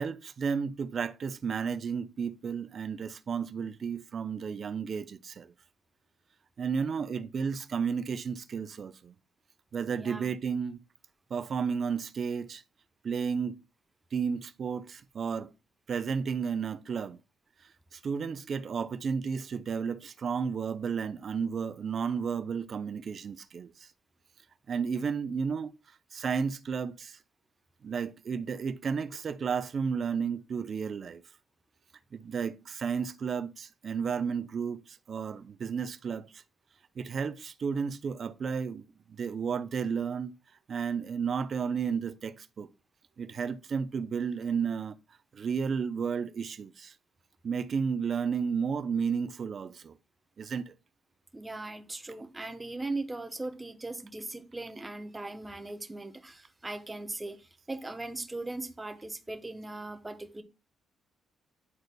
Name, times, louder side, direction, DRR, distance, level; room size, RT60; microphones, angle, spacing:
voice 1, 0.0-5.5 6.6-9.1 9.7-10.8 11.3-12.6 13.0-13.6 14.1-15.5 15.9-17.2 17.9-23.9 24.7-25.7 26.1-27.2 27.8-31.2 32.1-36.4 37.0-40.4 40.7-42.7 43.2-45.0 45.3-46.9 47.4-49.9 50.4-50.7, right 6 dB, 50° right, 0.6 m, -32 dB
voice 2, 9.9-10.3 51.3-57.4 57.7-60.4, right 2 dB, 15° right, 0.9 m, -39 dB
11.0 x 3.9 x 2.2 m
cardioid pair, 90°, 0 cm